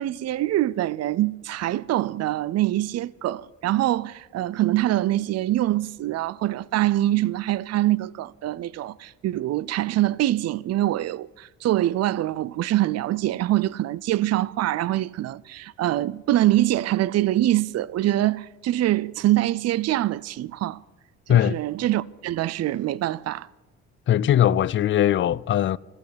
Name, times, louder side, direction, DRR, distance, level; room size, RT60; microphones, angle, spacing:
voice 1, 0.0-20.8 21.3-23.5, right 14 dB, 55° right, 0.5 m, -24 dB
voice 2, 24.1-25.8, left 11 dB, 40° left, 0.4 m, -20 dB
14.0 x 8.9 x 9.6 m
cardioid pair, 90°, 30 cm